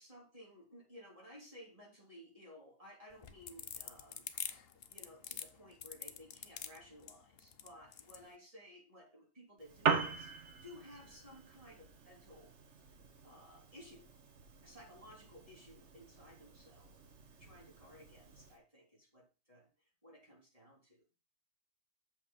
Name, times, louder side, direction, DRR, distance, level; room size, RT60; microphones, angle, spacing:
voice 1, 0.0-4.6 4.9-12.5 13.2-14.1 14.6-17.0 17.4-19.7 20.0-21.0, left 1 dB, 20° right, -3 dB, 3.4 m, -57 dB
sound 1, 3.1-8.2, left 8 dB, 60° left, 0.6 m, -45 dB
Piano, 9.6-18.6, right 5 dB, 45° right, 1.3 m, -41 dB
7.2 x 5.5 x 5.6 m, 0.33 s
omnidirectional pair, 1.9 m